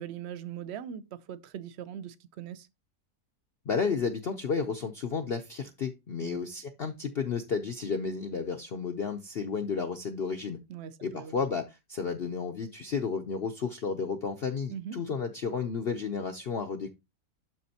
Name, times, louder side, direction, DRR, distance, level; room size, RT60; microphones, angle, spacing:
voice 1, 0.0-2.7 6.2-6.4 10.7-11.4 14.7-15.0, right 9 dB, 65° right, 0.6 m, -40 dB
voice 2, 3.7-10.6 11.0-16.9, left 5 dB, 55° left, 0.7 m, -32 dB
12.0 x 4.1 x 2.8 m
omnidirectional pair, 1.8 m